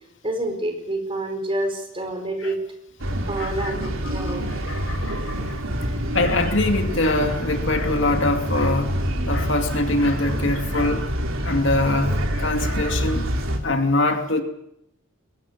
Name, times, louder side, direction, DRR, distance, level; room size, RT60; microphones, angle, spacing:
voice 1, 0.2-2.6 3.3-4.5, right 1 dB, 25° right, 5 dB, 4.3 m, -28 dB
sound 1, 3.0-13.6, equal, 75° right, 3.1 m, -26 dB
voice 2, 3.4-3.7 4.2-5.6 6.1-9.0 9.2-11.1 11.4-13.3 13.6-14.4, left 2 dB, 60° left, 5 dB, 2.5 m, -23 dB
22.0 x 18.5 x 8.5 m, 0.79 s
head